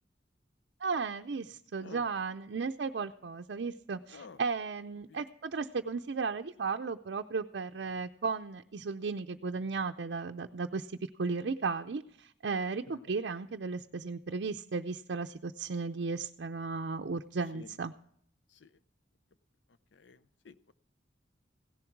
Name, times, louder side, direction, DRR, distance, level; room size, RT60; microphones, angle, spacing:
voice 1, 0.8-10.9 11.2-17.9, right 4 dB, 70° right, 4 dB, 0.5 m, -35 dB
voice 2, 4.1-4.4 5.1-5.2 12.9-13.1 17.5-17.8 18.5-18.8 19.7-20.7, left 4 dB, 85° left, 15 dB, 0.6 m, -53 dB
16.5 x 11.0 x 4.5 m, 0.67 s
head